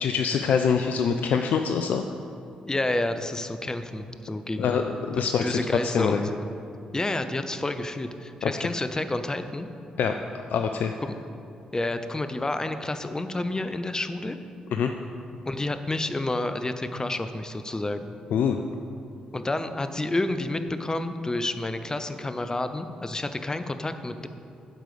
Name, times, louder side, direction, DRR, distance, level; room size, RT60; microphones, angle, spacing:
voice 1, 0.0-2.0 4.6-6.3 8.4-8.5 10.0-10.2 10.5-10.9 14.7-14.9 18.3-18.6, left 6 dB, 65° left, 5 dB, 0.4 m, -24 dB
voice 2, 2.7-4.8 5.4-6.4 6.9-9.7 11.0-11.1 11.7-14.4 15.5-18.1 19.3-24.3, left 2 dB, 20° left, 9 dB, 0.6 m, -29 dB
7.7 x 4.8 x 6.8 m, 2.6 s
hypercardioid pair, 40°, 3 cm